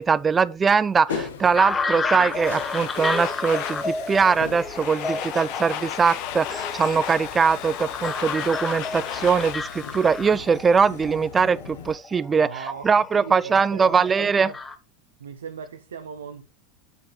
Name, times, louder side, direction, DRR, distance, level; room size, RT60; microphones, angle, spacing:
voice 1, 0.0-14.5, right 5 dB, 25° right, 0.3 m, -21 dB
sound 1, 1.1-11.9, left 6 dB, 85° left, 1.1 m, -40 dB
sound 2, 1.6-14.8, left 3 dB, 20° left, 0.9 m, -32 dB
Domestic sounds home sounds, 2.1-11.0, left 11 dB, 60° left, 0.8 m, -35 dB
voice 2, 12.4-12.9 13.1-14.6 15.2-16.5, right 6 dB, 85° right, 0.7 m, -38 dB
8.0 x 5.0 x 4.1 m
hypercardioid pair, 90°, 0 cm